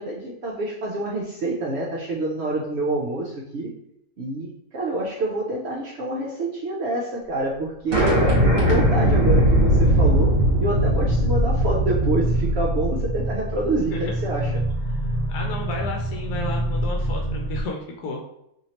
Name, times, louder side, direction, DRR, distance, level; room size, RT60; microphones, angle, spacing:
voice 1, 0.0-3.7 4.2-14.6, right 2 dB, 65° right, -3 dB, 0.7 m, -27 dB
sound 1, 7.9-13.2, equal, 45° right, 1.3 m, -20 dB
sound 2, 9.3-17.6, right 1 dB, 50° left, 0.6 m, -26 dB
voice 2, 15.3-18.3, left 2 dB, 85° left, 0 dB, 1.1 m, -32 dB
3.0 x 2.7 x 2.8 m, 0.79 s
omnidirectional pair, 1.5 m